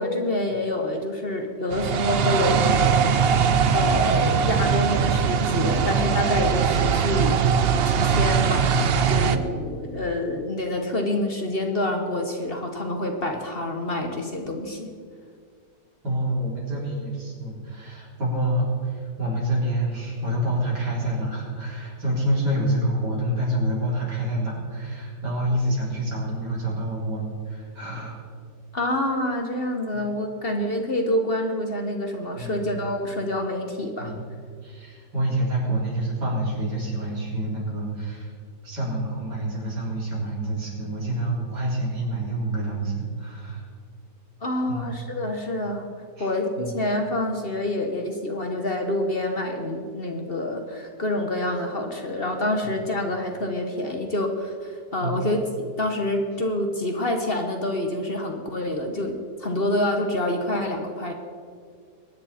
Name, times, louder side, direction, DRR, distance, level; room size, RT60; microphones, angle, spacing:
voice 1, 0.0-3.0 3.7-7.4 7.9-14.9 28.7-34.1 44.4-45.9 46.2-61.1, left 1 dB, 40° left, 4 dB, 1.1 m, -27 dB
sound 1, 1.7-9.4, right 6 dB, 60° right, 0.6 m, -21 dB
voice 2, 16.0-28.2 32.3-32.7 34.0-34.2 34.6-38.3 38.6-43.7 44.7-45.0 46.2-46.3 46.6-46.8 52.6-52.8 55.0-55.1, right 1 dB, 85° right, -4 dB, 4.2 m, -27 dB
22.5 x 9.9 x 4.2 m, 2.1 s
omnidirectional pair, 1.8 m